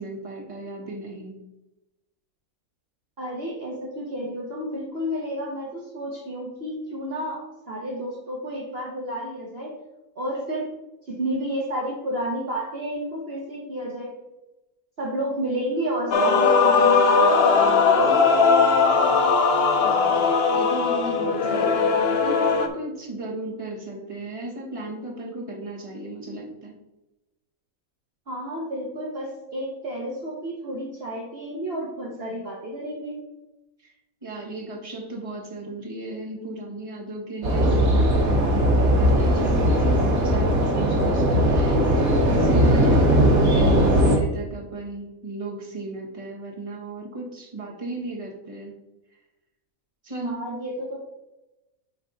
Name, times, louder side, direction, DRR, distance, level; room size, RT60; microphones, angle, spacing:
voice 1, 0.0-1.4 19.8-20.3 20.5-26.7 34.2-42.0 42.3-48.7 50.0-50.4, right 2 dB, 25° right, -2 dB, 1.5 m, -35 dB
voice 2, 3.2-9.8 10.2-10.7 11.1-14.1 15.0-18.4 28.3-33.2 50.2-51.0, right 1 dB, 50° right, -2 dB, 1.2 m, -31 dB
Male singing / Female singing / Musical instrument, 16.1-22.7, left 5 dB, 55° left, 0.8 m, -19 dB
sound 1, 37.4-44.2, equal, 85° right, 1.7 m, -19 dB
9.3 x 3.6 x 3.9 m, 0.97 s
omnidirectional pair, 1.4 m